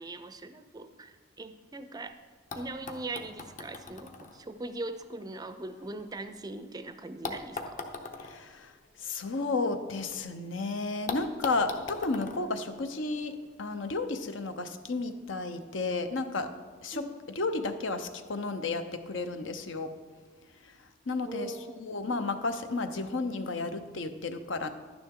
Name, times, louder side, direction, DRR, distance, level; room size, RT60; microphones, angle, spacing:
voice 1, 0.0-2.2 2.5-7.8 16.9-17.0 21.3-22.0, right 2 dB, 20° right, 10 dB, 0.4 m, -40 dB
sound 1, 2.1-2.2 2.5-6.6 7.2-10.2 10.5-10.6 11.1-13.5 14.5-14.6, left 4 dB, 40° left, 0.8 m, -42 dB
voice 2, 8.2-8.7 9.0-16.5 16.8-17.1 17.3-19.9 20.6-20.7 21.1-21.5 21.8-24.7, left 3 dB, 70° left, 9 dB, 0.7 m, -32 dB
11.5 x 9.7 x 3.7 m, 1.5 s
head